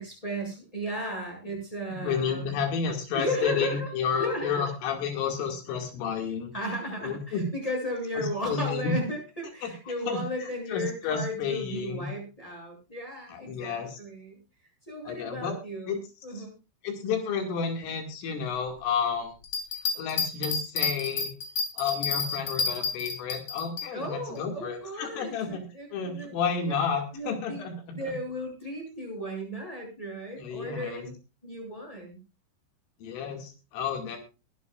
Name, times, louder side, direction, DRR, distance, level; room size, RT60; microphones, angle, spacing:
voice 1, 0.0-2.6 3.1-3.9 4.2-4.7 6.5-14.4 14.9-16.0 16.2-16.5 23.9-26.4 26.7-26.8 27.1-27.6 27.9-31.1 31.4-32.2, equal, 5° left, 0 dB, 7.7 m, -35 dB
voice 2, 1.9-6.5 7.0-7.4 8.2-8.9 9.6-9.7 10.1-12.1 13.3-14.0 15.1-15.5 15.9-16.0 16.3-16.5 16.8-19.3 20.0-21.3 21.8-25.6 25.9-27.7 30.4-31.1 33.0-34.2, left 6 dB, 85° left, 3 dB, 4.9 m, -31 dB
sound 1, 19.4-23.9, left 5 dB, 35° left, 3.2 m, -30 dB
22.5 x 11.0 x 2.5 m, 0.30 s
omnidirectional pair, 5.6 m